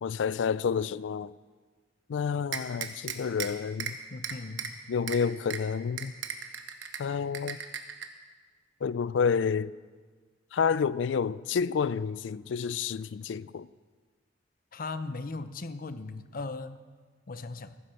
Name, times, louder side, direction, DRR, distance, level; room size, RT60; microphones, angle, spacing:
voice 1, 0.0-1.3 2.1-4.0 4.9-6.1 7.0-7.6 8.8-9.7 10.5-13.7, left 6 dB, 80° left, 0.4 m, -29 dB
sound 1, 2.5-3.5 3.8-3.9 4.2-4.7 5.1-5.2 5.5-5.6 6.0-7.0 7.3-8.1, right 8 dB, 80° right, 1.1 m, -35 dB
voice 2, 4.1-4.8 14.7-16.8 17.3-17.8, left 3 dB, 50° left, 0.7 m, -38 dB
15.0 x 9.9 x 6.5 m
head